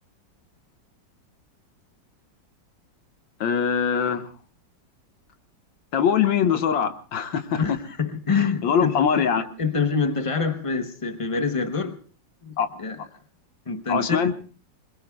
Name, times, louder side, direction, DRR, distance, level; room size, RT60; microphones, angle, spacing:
voice 1, 3.4-4.3 5.9-7.6 8.4-9.4 12.6-12.7 13.9-14.3, left 7 dB, 90° left, 2.1 m, -22 dB
voice 2, 7.6-9.3 9.6-12.0 12.4-13.0 13.7-14.3, left 5 dB, 45° left, 0.4 m, -26 dB
26.5 x 22.0 x 2.2 m
omnidirectional pair, 2.0 m